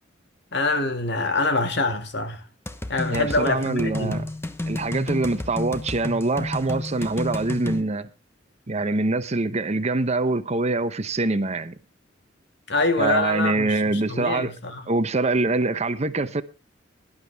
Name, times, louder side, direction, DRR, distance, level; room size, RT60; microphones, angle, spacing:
voice 1, 0.5-2.4 2.9-4.2 12.7-14.9, left 2 dB, 65° left, 2.2 m, -25 dB
sound 1, 2.7-7.8, left 1 dB, 15° left, 1.1 m, -31 dB
voice 2, 3.1-4.2 4.7-8.1 8.7-11.8 13.0-14.5 14.9-16.4, right 2 dB, 35° right, 0.8 m, -24 dB
17.5 x 11.5 x 3.5 m
head